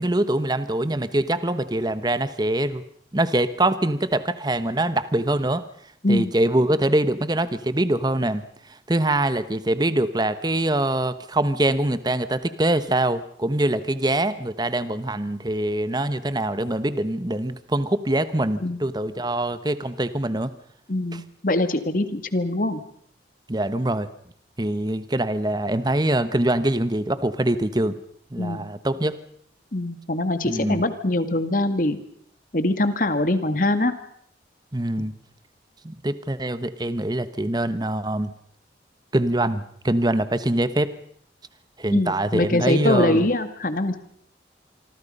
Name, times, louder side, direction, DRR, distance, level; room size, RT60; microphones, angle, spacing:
voice 1, 0.0-2.8 3.1-5.7 6.1-8.4 8.9-20.5 21.1-21.2 23.5-24.1 24.6-28.0 28.3-29.2 30.4-30.8 34.7-35.1 35.8-38.3 39.1-40.9 41.8-43.3, right 1 dB, 25° right, 13 dB, 1.1 m, -24 dB
voice 2, 20.9-22.8 28.4-28.6 29.7-32.0 32.5-33.9 41.9-44.0, left 1 dB, 50° left, 10 dB, 1.9 m, -23 dB
26.0 x 24.5 x 5.5 m, 0.64 s
head